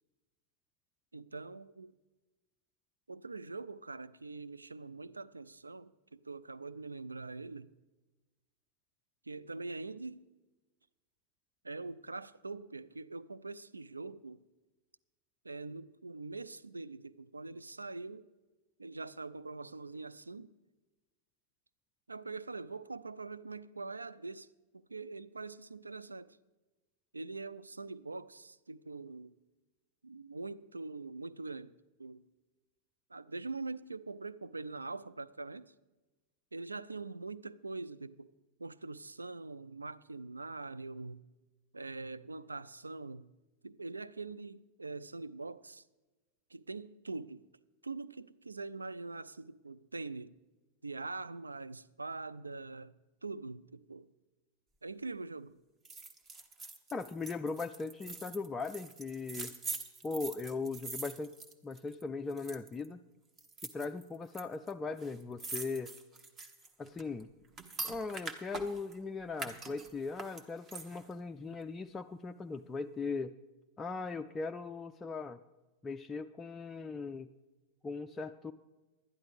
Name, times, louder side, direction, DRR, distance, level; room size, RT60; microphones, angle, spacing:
voice 1, 1.1-1.9 3.1-7.7 9.2-10.3 11.6-14.4 15.4-18.3 18.8-20.5 22.1-26.4 27.1-29.4 30.0-32.2 33.1-35.7 36.5-38.3 38.6-41.2 41.7-43.3 43.6-45.8 46.5-47.5 47.8-50.4 50.8-52.9 53.2-54.1 54.8-55.6, right 3 dB, 80° right, 0.3 m, -43 dB
sound 1, 55.9-62.0 62.3-62.9 63.4-64.4 64.7-64.8 65.0-69.0 69.3-71.1 71.5-71.6, right 3 dB, 25° right, 1.0 m, -44 dB
voice 2, 56.9-59.5 60.0-61.3 61.6-63.0 63.7-65.9 66.8-67.3 67.8-73.3 73.8-75.4 75.8-77.3 77.8-78.5, left 4 dB, 15° left, 0.3 m, -39 dB
11.5 x 10.5 x 5.0 m
figure-of-eight pair, 90°, 0 cm